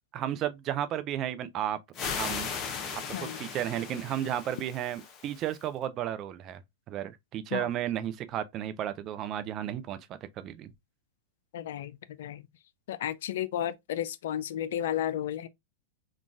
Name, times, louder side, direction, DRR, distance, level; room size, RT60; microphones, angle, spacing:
voice 1, 0.1-1.8 2.2-2.5 3.2-6.6 6.9-10.1 10.4-10.7, right 11 dB, 40° right, 0.4 m, -33 dB
sound 1, 1.9-5.6, left 6 dB, 35° left, 0.7 m, -37 dB
voice 2, 11.5-12.4 12.9-15.5, left 11 dB, 70° left, 0.3 m, -33 dB
3.8 x 2.3 x 2.4 m
hypercardioid pair, 110°, 0 cm